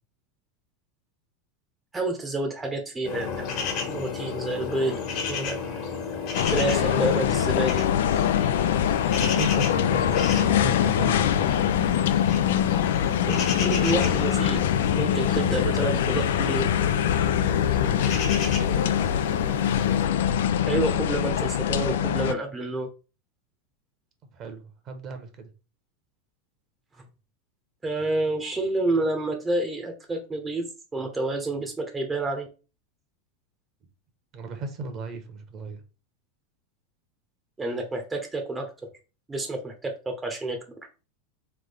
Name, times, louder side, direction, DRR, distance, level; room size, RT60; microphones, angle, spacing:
voice 1, 1.9-3.5 3.9-5.0 5.3-5.5 6.5-7.8 13.3-14.7 14.9-16.7 20.7-22.9 27.8-30.6 30.9-32.5 37.6-38.7 39.3-40.6, right 2 dB, 15° right, 0.9 m, -28 dB
sound 1, 3.0-20.0, left 5 dB, 50° left, 1.4 m, -33 dB
sound 2, 6.3-22.3, left 10 dB, 70° left, 0.4 m, -23 dB
voice 2, 9.2-11.5 18.0-18.9 24.3-25.5 34.3-35.8, right 3 dB, 40° right, 1.1 m, -36 dB
3.6 x 3.4 x 3.4 m
hypercardioid pair, 90°, 0 cm